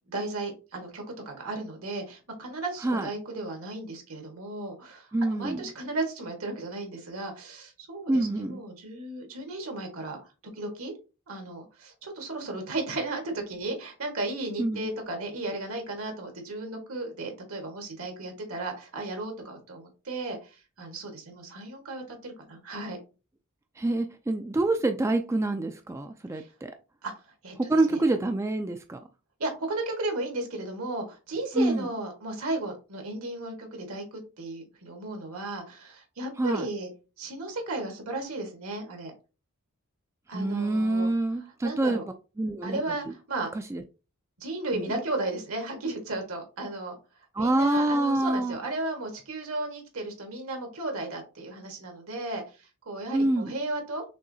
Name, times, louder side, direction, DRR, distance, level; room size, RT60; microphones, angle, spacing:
voice 1, 0.1-10.2 10.5-10.9 11.3-23.0 26.3-26.5 27.0-27.1 27.4-28.0 29.4-36.9 37.2-39.1 40.3-41.1 41.6-42.0 42.6-43.5 44.4-47.0 47.4-54.0, right 2 dB, 75° right, 1.6 m, -35 dB
voice 2, 5.1-5.6 8.1-8.6 14.6-14.9 23.8-26.7 27.6-29.0 31.5-31.9 36.4-36.7 40.3-43.1 43.7-43.8 44.7-44.9 47.3-48.6 53.1-53.5, right 2 dB, 15° right, 0.3 m, -26 dB
6.3 x 3.1 x 2.7 m
head